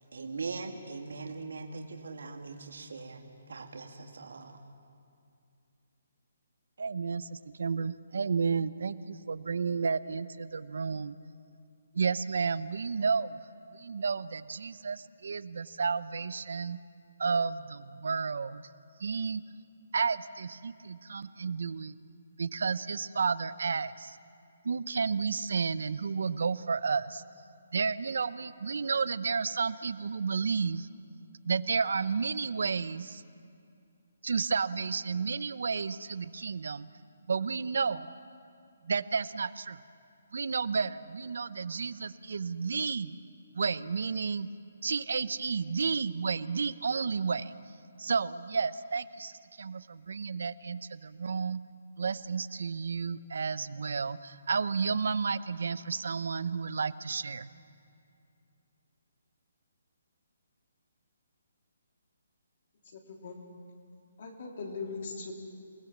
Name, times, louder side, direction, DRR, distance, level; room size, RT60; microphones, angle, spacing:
voice 1, 0.1-3.2 3.5-4.6, right 4 dB, 80° right, 3 dB, 2.3 m, -40 dB
voice 2, 6.8-11.2 11.9-13.4 13.7-16.8 17.2-18.6 19.0-19.4 19.9-21.9 22.4-24.2 24.6-27.2 27.7-30.9 31.5-33.2 34.2-36.9 37.3-38.1 38.8-39.8 40.3-43.1 43.5-44.5 44.8-47.5 48.0-49.3 49.6-51.6 52.0-57.5, right 5 dB, 65° right, 15 dB, 0.8 m, -31 dB
voice 3, 62.8-63.4 64.2-65.3, left 4 dB, 40° left, 1 dB, 3.2 m, -40 dB
29.0 x 19.5 x 7.3 m, 2.4 s
hypercardioid pair, 175°, 0 cm